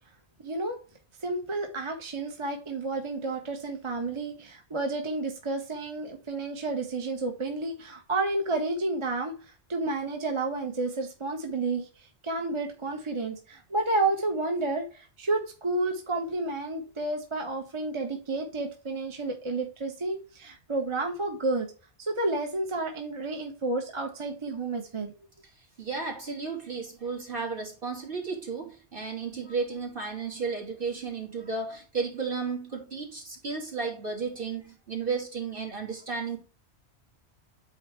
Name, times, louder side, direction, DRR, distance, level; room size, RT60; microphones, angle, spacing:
voice 1, 0.4-0.8 1.2-21.7 22.0-25.1, right 2 dB, 30° right, 3 dB, 0.9 m, -31 dB
voice 2, 25.8-36.4, right 4 dB, 50° right, 0 dB, 2.6 m, -33 dB
8.4 x 3.2 x 4.4 m, 0.36 s
omnidirectional pair, 1.1 m